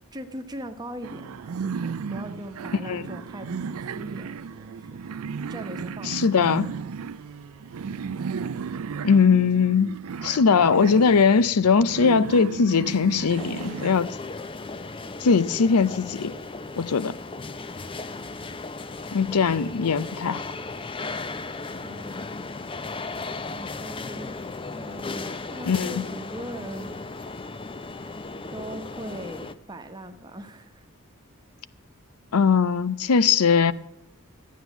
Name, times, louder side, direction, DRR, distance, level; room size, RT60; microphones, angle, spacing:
voice 1, 0.1-5.0 5.5-6.2 21.8-22.2 23.5-24.3 24.7-26.9 28.5-30.8, right 1 dB, 20° right, 1.1 m, -40 dB
sound 1, 1.0-13.9, right 5 dB, 75° right, 0.4 m, -34 dB
voice 2, 6.1-6.7 9.0-9.9 10.2-14.1 15.2-16.3 16.8-17.1 19.1-20.4 25.7-26.1 32.3-33.7, left 5 dB, 90° left, 0.6 m, -20 dB
sound 2, 13.4-29.5, left 3 dB, 25° left, 0.5 m, -36 dB
13.0 x 9.4 x 7.1 m
head